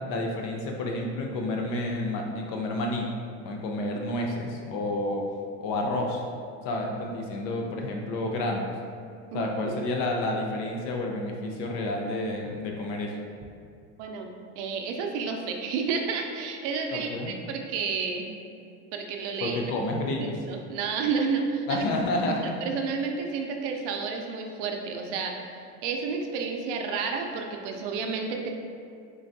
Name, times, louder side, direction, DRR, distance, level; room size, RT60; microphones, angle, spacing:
voice 1, 0.1-3.1 3.4-5.2 5.6-6.2 6.6-8.7 9.3-13.1 16.9-17.3 19.4-20.4 21.7-22.6, left 1 dB, 60° left, 1 dB, 0.6 m, -30 dB
voice 2, 14.0-14.3 14.6-18.3 18.9-19.6 20.2-21.8 22.2-28.5, right 5 dB, 80° right, 3 dB, 0.6 m, -31 dB
3.8 x 3.4 x 2.6 m, 2.4 s
supercardioid pair, 125°, 35 cm